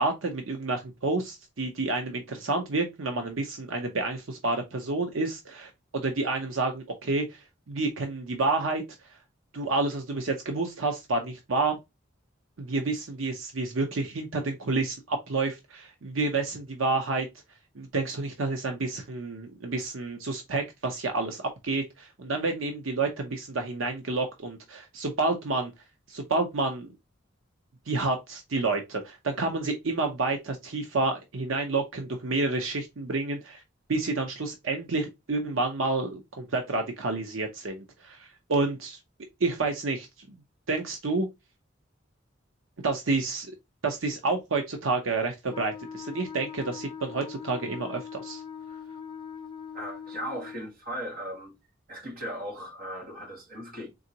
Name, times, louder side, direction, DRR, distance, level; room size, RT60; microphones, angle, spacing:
voice 1, 0.0-8.8 9.5-11.8 12.6-17.3 17.8-25.7 26.1-26.9 27.9-33.6 33.9-39.0 39.4-40.4 40.7-41.3 42.8-43.5 43.8-48.4, right 3 dB, 80° right, 0.7 m, -29 dB
Wind instrument woodwind instrument, 45.5-50.7, left 7 dB, 20° left, 0.6 m, -41 dB
voice 2, 49.7-51.6 51.9-53.9, equal, 50° right, 1.7 m, -37 dB
3.9 x 3.7 x 2.8 m
head